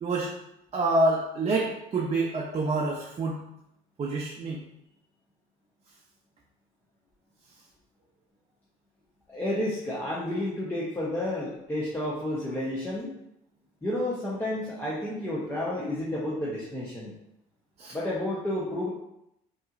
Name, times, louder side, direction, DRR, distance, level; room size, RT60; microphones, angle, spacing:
voice 1, 0.0-0.3 0.7-3.4 4.0-4.6 17.8-18.0, right 2 dB, 35° right, -3 dB, 0.7 m, -27 dB
voice 2, 9.3-13.1 13.8-17.1 17.9-18.9, left 1 dB, 10° left, -7 dB, 0.9 m, -31 dB
5.3 x 3.0 x 2.5 m, 0.81 s
cardioid pair, 110°, 17 cm